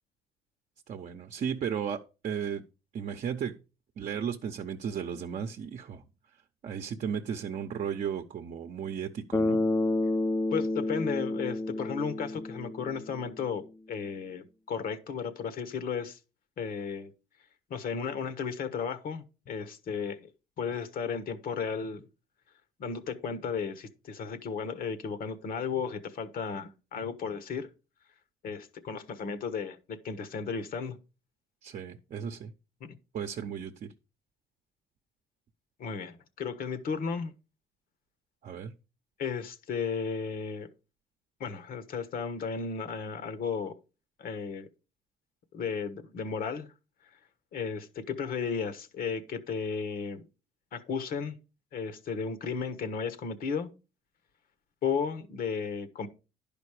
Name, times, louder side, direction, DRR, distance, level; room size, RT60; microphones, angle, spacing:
voice 1, 0.9-2.6 2.9-3.6 4.0-6.0 6.6-9.6 31.6-32.5 33.1-33.9 38.4-38.7, right 7 dB, 50° right, 0.8 m, -35 dB
Bass guitar, 9.3-13.3, left 2 dB, 15° left, 0.6 m, -30 dB
voice 2, 10.5-16.2 16.6-17.1 17.7-20.3 20.6-22.1 22.8-27.7 28.4-31.0 32.8-32.9 35.8-37.3 39.2-40.7 41.4-43.7 44.2-44.7 45.5-46.7 47.5-50.2 50.7-51.4 51.7-53.7 54.8-56.1, left 6 dB, 60° left, 1.2 m, -34 dB
11.0 x 5.2 x 4.9 m
cardioid pair, 110°, 17 cm